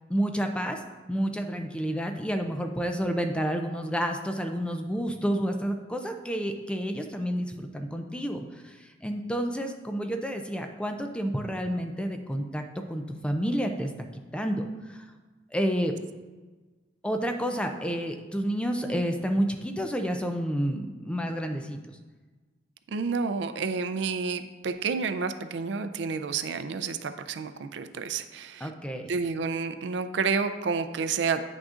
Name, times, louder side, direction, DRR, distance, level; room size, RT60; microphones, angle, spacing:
voice 1, 0.1-0.8 1.1-12.6 12.9-14.1 14.3-15.1 15.5-15.9 17.0-22.0 28.6-29.1, equal, 5° left, 5 dB, 0.4 m, -30 dB
voice 2, 22.9-28.7 29.1-31.4, right 5 dB, 70° right, 9 dB, 0.4 m, -30 dB
9.0 x 6.1 x 2.5 m, 1.3 s
head